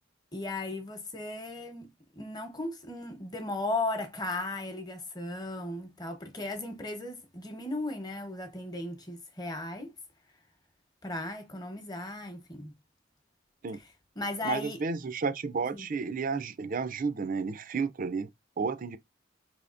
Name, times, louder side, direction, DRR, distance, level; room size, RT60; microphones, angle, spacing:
voice 1, 0.3-9.9 11.0-12.7 13.7-13.9 14.2-14.8 15.7-15.9, left 2 dB, 20° left, 1.0 m, -36 dB
voice 2, 14.4-18.3 18.6-19.0, right 5 dB, 45° right, 0.5 m, -32 dB
4.8 x 3.5 x 2.5 m
head